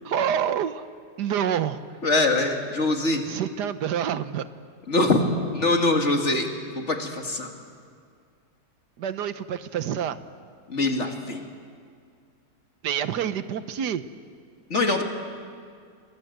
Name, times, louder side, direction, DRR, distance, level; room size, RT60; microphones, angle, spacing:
voice 1, 0.0-0.8 1.2-1.8 3.3-4.5 9.0-10.2 12.8-14.0 14.7-15.0, right 9 dB, 85° right, 12 dB, 1.5 m, -27 dB
voice 2, 2.0-3.2 4.9-5.2 5.5-6.5 6.7-7.5 10.7-11.4 14.7-15.0, left 2 dB, 45° left, 3 dB, 2.5 m, -23 dB
28.0 x 24.5 x 8.0 m, 2.2 s
omnidirectional pair, 1.7 m